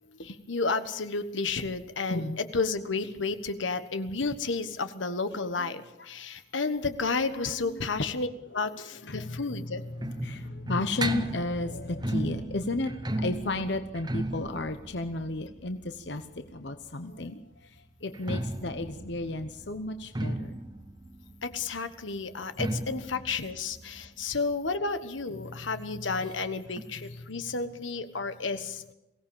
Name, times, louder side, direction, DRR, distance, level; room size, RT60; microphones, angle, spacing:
voice 1, 0.2-8.3 8.5-9.8 21.4-28.8, left 4 dB, 85° left, 10 dB, 1.4 m, -31 dB
voice 2, 9.1-9.9 10.2-12.9 13.2-16.2 16.5-17.4 18.0-20.5 25.5-25.6, left 2 dB, 65° left, 8 dB, 1.0 m, -33 dB
sound 1, 9.2-16.9 18.0-25.4 25.7-25.8 26.0-26.1 26.8-26.9, right 1 dB, 20° right, 1.1 m, -36 dB
22.5 x 17.0 x 7.2 m, 0.91 s
head